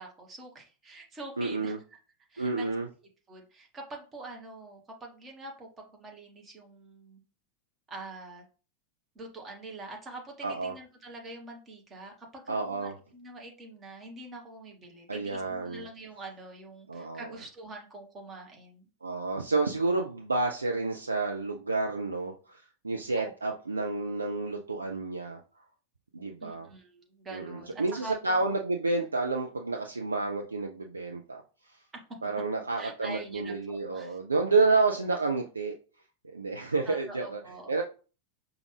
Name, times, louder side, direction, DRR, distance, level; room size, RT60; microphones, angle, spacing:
voice 1, 0.0-2.0 2.3-2.7 3.3-7.2 7.9-8.4 9.1-18.9 23.2-23.3 26.4-28.4 29.0-29.1 32.8-34.2 36.6-37.7, right 2 dB, 20° right, 1 dB, 1.2 m, -45 dB
voice 2, 1.4-1.8 2.4-2.9 10.4-10.7 12.5-12.9 15.1-15.9 16.9-17.3 19.0-25.4 26.1-26.7 27.3-31.4 32.2-35.7 36.2-37.4 37.7-37.8, right 3 dB, 80° right, 2 dB, 0.4 m, -30 dB
4.9 x 2.4 x 3.2 m, 0.36 s
figure-of-eight pair, 90°, 0 cm